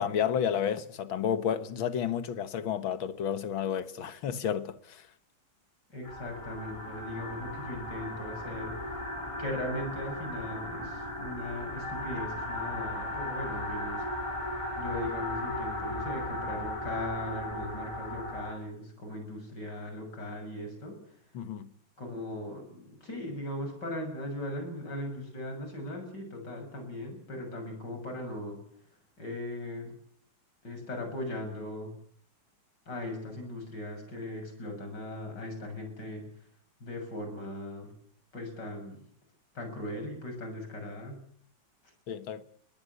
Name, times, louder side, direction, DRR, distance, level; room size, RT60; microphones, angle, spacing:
voice 1, 0.0-5.0 21.3-21.7 42.1-42.4, left 8 dB, 85° left, 2.2 m, -31 dB
voice 2, 5.9-8.7 9.4-14.0 14.3-14.4 14.8-21.0 22.0-28.6 29.2-29.9 30.6-31.9 32.9-36.2 36.8-37.9 38.3-39.0 39.5-41.2, left 1 dB, 60° left, 7.5 m, -38 dB
sound 1, 6.0-18.6, left 1 dB, 15° left, 5.3 m, -36 dB
22.0 x 18.0 x 8.3 m
omnidirectional pair, 2.1 m